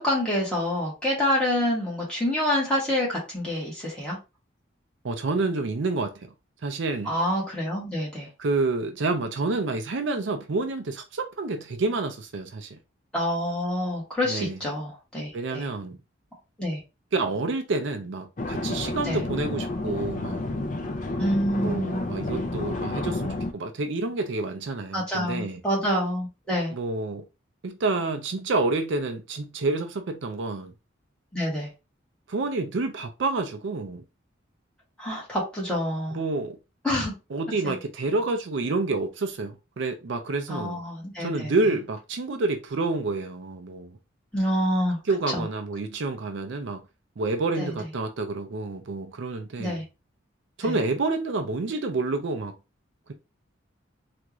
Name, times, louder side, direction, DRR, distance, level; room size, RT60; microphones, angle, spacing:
voice 1, 0.0-4.2 7.0-8.3 13.1-15.7 16.6-16.8 19.0-19.2 21.2-22.0 24.9-26.7 31.3-31.7 35.0-36.2 36.8-37.1 37.6-37.7 40.5-41.5 44.3-45.0 45.3-45.4 47.6-47.7 49.6-49.8 50.6-50.8, left 1 dB, 5° left, 1.7 m, -27 dB
voice 2, 5.0-6.1 6.6-7.2 8.4-12.8 14.2-14.6 15.3-16.0 17.1-20.4 21.6-25.6 26.7-27.2 27.6-30.7 32.3-34.0 36.1-36.6 37.3-40.8 41.2-44.0 45.0-46.8 47.2-49.8 50.6-52.5, right 3 dB, 65° right, 0.5 m, -28 dB
sound 1, 18.4-23.5, left 2 dB, 40° left, 0.4 m, -30 dB
3.4 x 2.5 x 3.0 m
head